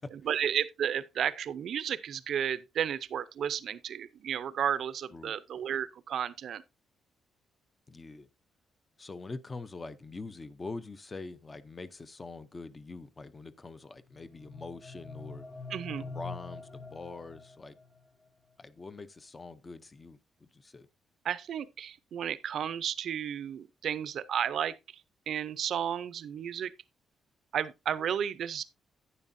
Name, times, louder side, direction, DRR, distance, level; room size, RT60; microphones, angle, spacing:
voice 1, 0.3-6.6 15.7-16.1 21.2-25.0 25.3-26.7 27.5-28.7, right 9 dB, 50° right, 0.6 m, -33 dB
voice 2, 7.9-8.3 9.0-15.4 16.0-17.8 18.6-20.9, left 3 dB, 20° left, 0.6 m, -44 dB
sound 1, 14.1-18.0, left 3 dB, 45° left, 4.4 m, -45 dB
11.0 x 9.8 x 2.6 m
cardioid pair, 180°, 0 cm